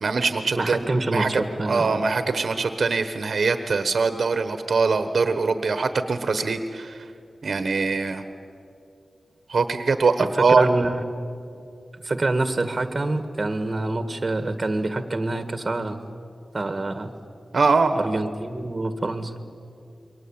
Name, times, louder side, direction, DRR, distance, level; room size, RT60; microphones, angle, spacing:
voice 1, 0.0-7.1 7.4-8.2 9.5-10.7 17.5-18.0, right 4 dB, 60° right, 9 dB, 1.2 m, -22 dB
voice 2, 0.6-2.0 10.2-10.9 12.0-16.0 16.5-17.1 17.9-19.3, right 2 dB, 30° right, 9 dB, 1.8 m, -26 dB
28.0 x 23.0 x 8.9 m, 2.5 s
wide cardioid pair, 135°, 0 cm